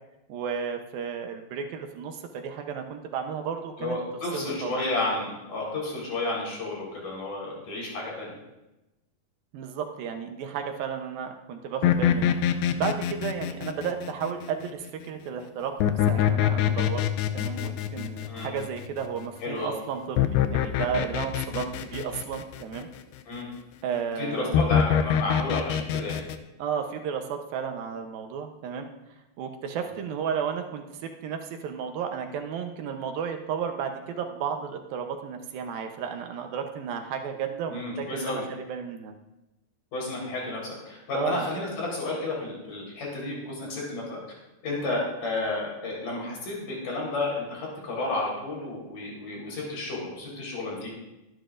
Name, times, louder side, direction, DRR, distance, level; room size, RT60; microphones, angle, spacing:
voice 1, 0.3-4.0 4.3-4.8 9.5-12.4 12.7-17.0 17.3-22.9 23.8-24.6 26.6-28.9 29.4-39.1 41.1-41.5, right 7 dB, 75° right, 5 dB, 2.6 m, -33 dB
voice 2, 3.8-8.4 18.3-18.5 19.4-19.7 23.3-23.5 24.2-26.2 37.7-38.4 39.9-44.2 44.6-50.9, left 2 dB, 60° left, -3 dB, 5.8 m, -31 dB
sound 1, 11.8-14.7 15.8-19.2 20.2-22.8 24.5-26.4, left 9 dB, 90° left, 2.6 m, -25 dB
22.5 x 11.0 x 2.6 m, 0.97 s
omnidirectional pair, 4.4 m